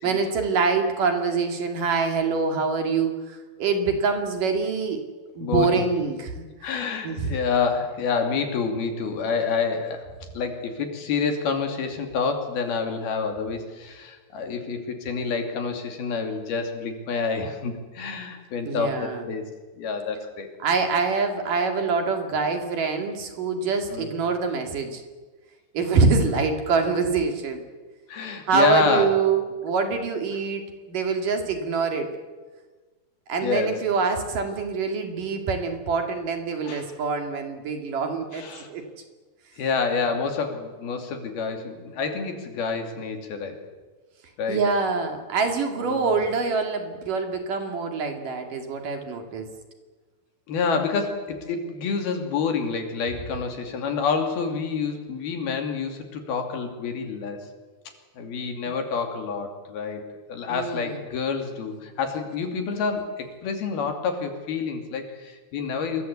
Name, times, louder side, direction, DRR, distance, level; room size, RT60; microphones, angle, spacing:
voice 1, 0.0-5.0 5.4-6.7 7.0-7.3 18.7-19.2 20.6-25.0 25.7-27.6 28.5-32.1 33.3-38.9 44.5-49.5 58.6-58.7 60.5-61.0, right 4 dB, 55° right, 5 dB, 3.7 m, -25 dB
voice 2, 5.4-5.8 6.6-10.0 10.3-19.4 19.8-20.5 23.9-24.1 26.3-26.4 28.1-29.1 33.4-33.8 36.6-36.9 38.3-38.7 39.6-43.6 44.4-44.6 45.8-46.1 50.5-57.5 58.2-66.0, left 5 dB, 65° left, 5 dB, 4.6 m, -28 dB
27.0 x 22.5 x 8.4 m, 1.3 s
omnidirectional pair, 4.8 m